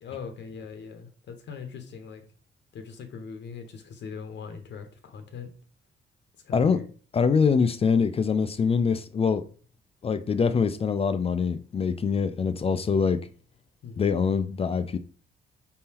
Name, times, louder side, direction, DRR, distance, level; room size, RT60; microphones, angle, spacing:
voice 1, 0.0-2.2 2.7-5.5 6.4-6.8 13.8-14.2, left 6 dB, 65° left, 0.8 m, -40 dB
voice 2, 6.5-6.8 7.1-9.5 10.0-13.3 14.0-15.0, left 5 dB, 30° left, 0.4 m, -24 dB
4.1 x 3.7 x 2.8 m
cardioid pair, 90°, 20 cm